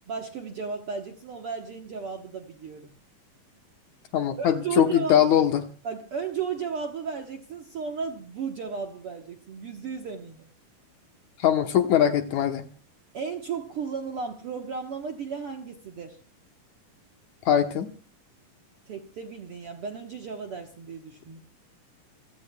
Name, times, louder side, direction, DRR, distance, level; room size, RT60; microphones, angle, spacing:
voice 1, 0.1-2.9 4.4-5.3 5.8-10.5 13.1-16.2 18.8-21.4, right 6 dB, 60° right, 3 dB, 1.5 m, -34 dB
voice 2, 4.1-5.6 11.4-12.7 17.5-17.9, left 10 dB, 65° left, 6 dB, 2.2 m, -21 dB
28.0 x 16.5 x 2.3 m, 0.37 s
omnidirectional pair, 4.1 m